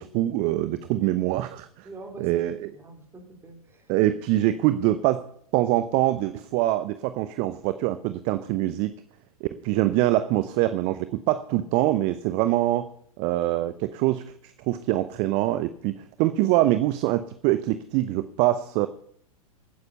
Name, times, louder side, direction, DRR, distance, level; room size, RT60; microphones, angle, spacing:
voice 1, 0.0-1.9 2.2-2.7 3.9-8.9 9.4-12.9 13.2-18.9, right 15 dB, 35° right, 13 dB, 0.7 m, -24 dB
voice 2, 1.9-2.4 2.7-3.9, right 2 dB, 15° right, 2 dB, 3.7 m, -44 dB
16.0 x 9.6 x 5.5 m, 0.65 s
figure-of-eight pair, 105°, 19 cm